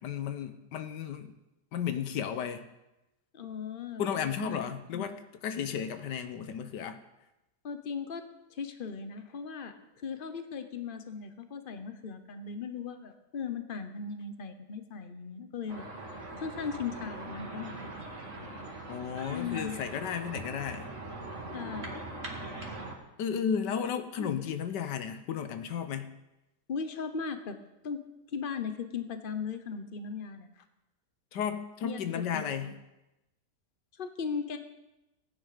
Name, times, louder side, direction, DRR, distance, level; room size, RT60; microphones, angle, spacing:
voice 1, 0.0-1.3 1.7-2.6 4.0-7.0 18.9-20.9 23.2-26.1 31.3-32.7, left 8 dB, 80° left, 9 dB, 1.5 m, -34 dB
voice 2, 3.3-4.5 4.9-5.1 7.6-8.2 8.5-15.9 16.4-17.9 18.2-18.7 19.3-19.8 21.5-22.0 24.2-24.4 26.7-27.6 27.8-28.0 28.3-30.6 31.8-32.7 34.0-34.6, left 6 dB, 40° left, 9 dB, 0.9 m, -38 dB
sound 1, 15.7-22.9, right 2 dB, 45° right, 2.3 m, -41 dB
15.5 x 10.0 x 5.1 m, 0.95 s
omnidirectional pair, 1.8 m